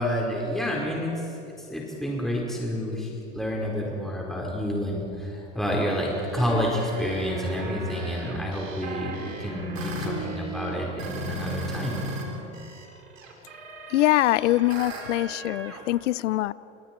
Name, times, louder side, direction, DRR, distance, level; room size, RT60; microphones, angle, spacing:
voice 1, 0.0-12.0, equal, ahead, -3 dB, 4.4 m, -29 dB
sound 1, 6.1-12.2 12.5-15.8, right 2 dB, 85° right, 4.9 m, -36 dB
voice 2, 13.9-16.5, left 16 dB, 75° left, 20 dB, 0.7 m, -23 dB
29.5 x 27.5 x 4.5 m, 3.0 s
hypercardioid pair, 85°, 37 cm